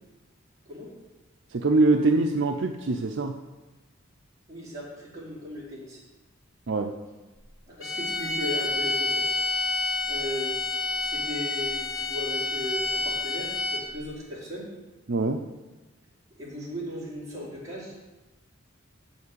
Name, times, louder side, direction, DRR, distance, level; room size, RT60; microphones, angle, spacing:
voice 1, 1.5-3.4 6.7-6.9 15.1-15.4, right 3 dB, 60° right, 4 dB, 0.6 m, -23 dB
voice 2, 4.5-6.0 7.7-9.2 10.0-10.6 11.0-14.7 16.4-17.9, equal, 15° right, -8 dB, 4.3 m, -37 dB
sound 1, 7.8-14.0, left 3 dB, 75° left, 2.0 m, -29 dB
8.4 x 7.2 x 8.4 m, 1.2 s
head